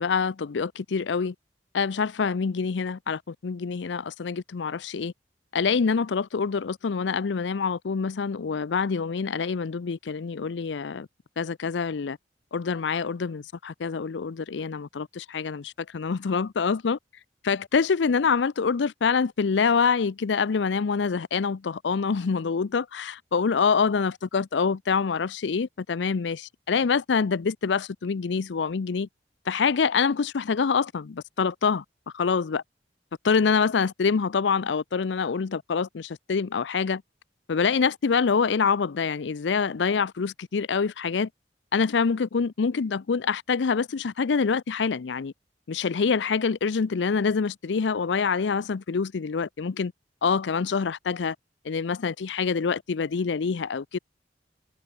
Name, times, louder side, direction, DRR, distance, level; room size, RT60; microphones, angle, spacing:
voice 1, 0.0-1.3 1.7-5.1 5.5-11.1 11.4-12.2 12.5-17.0 17.4-29.1 29.5-31.8 32.1-32.6 33.2-37.0 37.5-41.3 41.7-45.3 45.7-49.9 50.2-51.4 51.6-54.0, left 5 dB, 75° left, 0.5 m, -26 dB
head